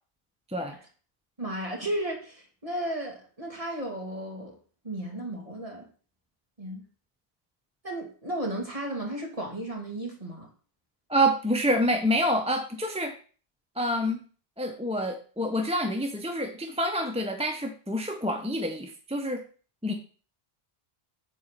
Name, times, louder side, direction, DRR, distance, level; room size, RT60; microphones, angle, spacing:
voice 1, 1.4-4.6 4.8-5.9 6.6-6.8 7.8-10.5, right 1 dB, 35° right, 0 dB, 2.6 m, -34 dB
voice 2, 11.1-13.1 13.8-14.2 14.6-19.4 19.8-19.9, equal, 5° right, 4 dB, 0.8 m, -27 dB
9.3 x 4.2 x 7.3 m, 0.40 s
omnidirectional pair, 1.0 m